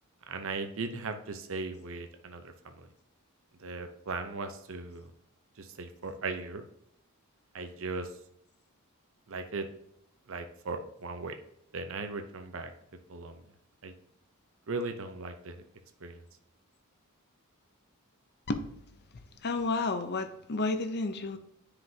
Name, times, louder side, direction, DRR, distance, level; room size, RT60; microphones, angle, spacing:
voice 1, 0.3-2.9 3.6-5.1 5.6-6.6 7.5-8.1 9.3-9.7 10.3-11.4 11.7-12.7 13.1-13.4 13.8-13.9 14.7-15.6 16.0-16.2, right 3 dB, 60° right, 7 dB, 0.8 m, -38 dB
voice 2, 19.4-21.4, left 3 dB, 45° left, 8 dB, 0.7 m, -31 dB
9.4 x 5.0 x 2.8 m, 0.74 s
head